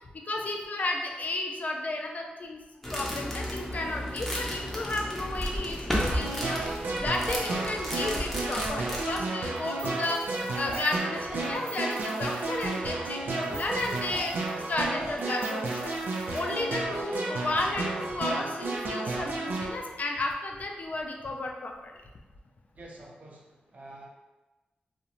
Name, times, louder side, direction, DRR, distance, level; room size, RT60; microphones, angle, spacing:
voice 1, 0.3-2.6 2.9-10.2 10.5-15.9 16.3-21.9, left 2 dB, 50° left, 1 dB, 0.4 m, -33 dB
sound 1, 2.8-9.3, equal, 5° left, 0.6 m, -33 dB
sound 2, 6.0-19.7, right 3 dB, 85° right, 0.4 m, -32 dB
sound 3, 9.6-17.0, right 2 dB, 20° right, 1.0 m, -46 dB
voice 2, 22.7-24.1, right 1 dB, 50° right, -2 dB, 0.6 m, -48 dB
2.5 x 2.1 x 2.8 m, 1.1 s
cardioid pair, 65°, 3 cm